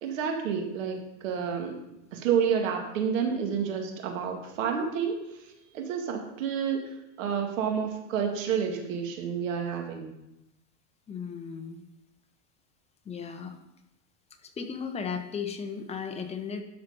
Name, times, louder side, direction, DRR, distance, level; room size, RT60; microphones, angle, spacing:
voice 1, 0.0-1.8 2.1-5.2 5.7-6.9 7.2-10.1, right 7 dB, 80° right, 4 dB, 2.0 m, -29 dB
voice 2, 11.1-11.8 13.0-13.6 14.4-16.6, left 6 dB, 15° left, 5 dB, 0.9 m, -35 dB
12.5 x 4.4 x 5.4 m, 0.90 s
supercardioid pair, 145°, 38 cm